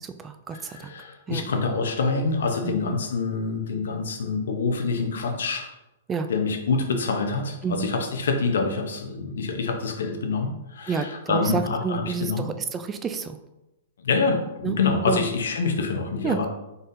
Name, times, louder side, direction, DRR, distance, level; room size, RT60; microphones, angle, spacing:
voice 1, 0.0-1.0 1.3-1.5 2.6-3.0 6.1-6.3 7.6-7.9 10.9-13.4 14.6-14.8 15.1-15.3 16.2-16.5, right 5 dB, 20° right, 8 dB, 0.3 m, -29 dB
voice 2, 0.5-5.7 6.3-12.5 14.0-16.5, left 4 dB, 75° left, 4 dB, 0.8 m, -26 dB
4.0 x 3.8 x 2.6 m, 0.94 s
hypercardioid pair, 125°, 0 cm